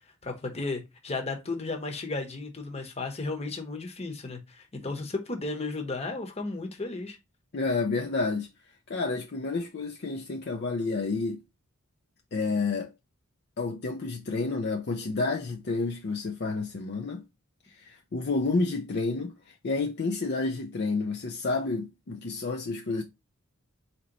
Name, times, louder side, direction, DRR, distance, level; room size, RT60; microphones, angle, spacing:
voice 1, 0.2-7.2, left 3 dB, 30° left, 1.0 m, -34 dB
voice 2, 7.5-8.5 8.9-11.4 12.3-12.9 13.6-17.2 17.7-23.0, left 3 dB, 50° left, 0.5 m, -30 dB
4.2 x 2.9 x 3.8 m
head